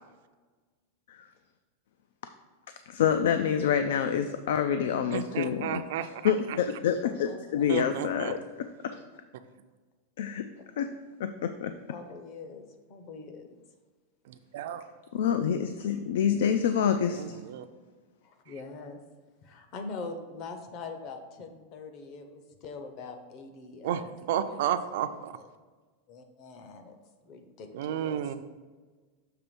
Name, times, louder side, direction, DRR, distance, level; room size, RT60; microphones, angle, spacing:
voice 1, 2.9-5.8 6.2-8.4 8.8-8.9 10.2-10.4 10.8-10.9 11.2-11.7 15.1-17.4, left 8 dB, 70° left, 9 dB, 0.4 m, -27 dB
voice 2, 5.1-6.6 7.7-8.4 14.3-14.8 17.1-17.7 23.8-25.4 27.7-28.3, right 10 dB, 55° right, 10 dB, 0.4 m, -32 dB
voice 3, 7.0-7.7 11.9-13.5 18.2-19.0 19.4-24.1 24.4-24.7 25.0-25.1 25.3-25.5 26.1-27.0 27.2-28.2, left 4 dB, 30° left, 6 dB, 0.7 m, -43 dB
6.7 x 3.4 x 6.0 m, 1.3 s
supercardioid pair, 175°, 0 cm